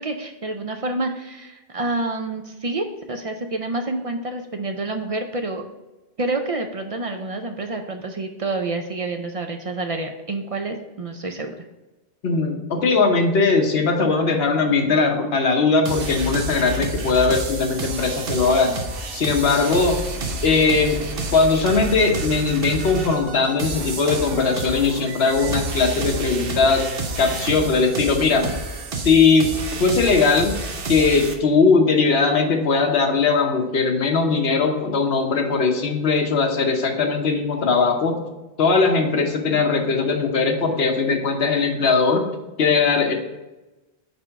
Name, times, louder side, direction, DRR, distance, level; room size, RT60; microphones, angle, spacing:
voice 1, 0.0-5.7 6.2-11.6, right 2 dB, 50° right, 5 dB, 0.4 m, -28 dB
voice 2, 12.2-18.8 19.1-20.0 20.4-21.0 21.3-26.8 27.2-28.5 29.0-29.5 29.8-30.5 30.9-38.2 38.6-42.2 42.6-43.1, left 4 dB, 80° left, 3 dB, 1.1 m, -19 dB
sound 1, 15.8-31.3, right 2 dB, 65° right, 1.0 m, -29 dB
4.3 x 4.3 x 5.6 m, 1.1 s
omnidirectional pair, 1.0 m